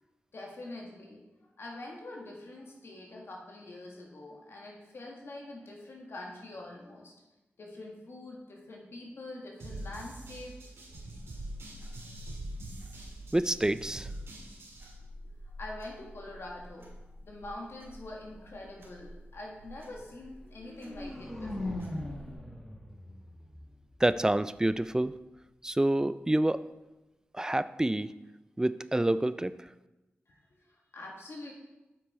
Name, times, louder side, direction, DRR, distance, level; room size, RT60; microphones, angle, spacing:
voice 1, 0.3-1.2 1.6-7.1 7.6-10.5 15.5-16.9 17.2-21.7 30.3-31.5, left 2 dB, 70° left, -1 dB, 1.8 m, -45 dB
sound 1, 9.6-14.9, right 1 dB, 80° right, 2.0 m, -44 dB
sound 2, 10.9-22.3, equal, 60° right, 2.4 m, -49 dB
voice 2, 13.3-14.1 24.0-25.1 25.6-26.6 27.3-28.1 28.6-29.5, right 1 dB, 15° right, 14 dB, 0.4 m, -27 dB
sound 3, 20.5-24.5, left 1 dB, 5° left, 1.4 m, -40 dB
8.2 x 6.0 x 4.3 m, 1.0 s
cardioid pair, 55°, 4 cm